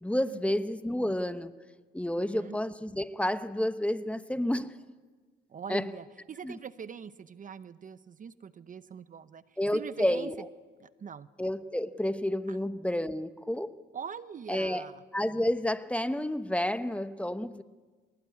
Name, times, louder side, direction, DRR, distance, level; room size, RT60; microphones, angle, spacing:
voice 1, 0.0-1.5 1.9-4.7 5.7-5.9 6.4-6.5 9.6-10.4 11.4-13.7 14.5-14.8 15.1-17.6, left 1 dB, 5° left, 12 dB, 1.0 m, -30 dB
voice 2, 2.2-2.6 5.5-10.3 10.8-11.3 12.5-12.6 13.9-15.0, right 7 dB, 40° right, 15 dB, 0.8 m, -43 dB
23.5 x 20.5 x 9.5 m, 1.4 s
cardioid pair, 90°, 20 cm